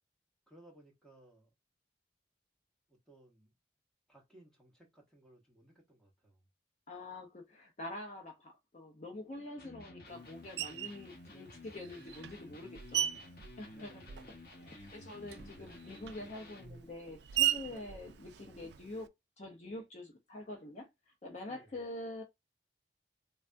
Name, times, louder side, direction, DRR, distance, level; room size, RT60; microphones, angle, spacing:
voice 1, 0.5-1.5 2.9-3.6 4.1-6.5 13.7-14.4 17.7-18.0 21.4-21.7, right 1 dB, 5° left, 1.0 m, -60 dB
voice 2, 6.9-13.1 13.6-14.0 14.6-19.1 19.4-20.9 21.2-22.2, left 1 dB, 40° left, 0.6 m, -46 dB
Electric guitar, 9.6-16.9, left 1 dB, 55° left, 0.9 m, -53 dB
Screech, 10.6-11.0 11.8-14.5 14.8-19.1, right 11 dB, 70° right, 0.3 m, -37 dB
3.3 x 2.2 x 2.5 m
head